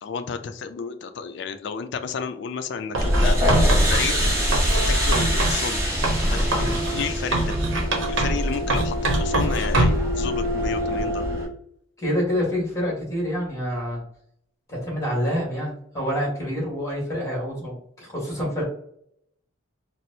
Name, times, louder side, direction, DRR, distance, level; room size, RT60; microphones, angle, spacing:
voice 1, 0.0-5.8 6.3-7.6 8.1-11.3, left 6 dB, 60° left, 10 dB, 0.3 m, -32 dB
Writing, 2.9-5.6 6.0-8.4 8.7-10.1, right 2 dB, 70° right, 0.8 m, -24 dB
sound 1, 3.0-11.5, equal, 15° right, 0.9 m, -23 dB
Keyboard (musical), 4.7-8.1, equal, 45° right, 1.1 m, -40 dB
voice 2, 12.0-14.0 14.7-18.6, equal, 15° left, -3 dB, 1.3 m, -27 dB
4.2 x 2.0 x 2.6 m, 0.69 s
head